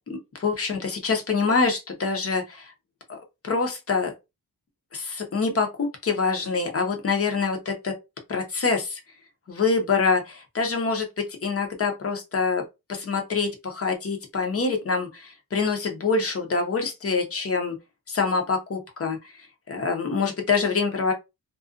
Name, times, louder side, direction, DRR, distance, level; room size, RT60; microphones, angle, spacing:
voice 1, 0.1-2.7 3.1-3.2 3.4-4.1 4.9-7.9 8.3-9.0 9.5-12.6 12.9-17.8 18.1-19.3 19.7-21.1, left 4 dB, 35° left, 0.8 m, -25 dB
2.5 x 2.3 x 2.4 m
wide cardioid pair, 125°, 39 cm